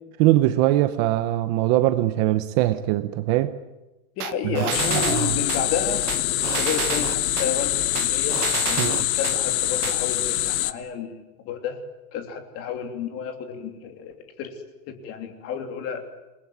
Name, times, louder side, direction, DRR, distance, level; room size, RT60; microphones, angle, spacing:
voice 1, 0.2-3.5 4.4-4.6 4.9-5.4 8.8-9.0, right 15 dB, 30° right, 12 dB, 0.8 m, -22 dB
voice 2, 4.2-8.4 8.7-11.8 12.1-14.5 14.9-16.1, left 7 dB, 30° left, 6 dB, 3.2 m, -31 dB
sound 1, 4.2-5.6 6.1-7.5 8.0-9.4 9.8-10.0, right 14 dB, 80° right, 1.6 m, -30 dB
sound 2, 4.7-10.7, left 14 dB, 65° left, 1.6 m, -24 dB
28.0 x 21.0 x 9.4 m, 1.0 s
supercardioid pair, 175°, 45 cm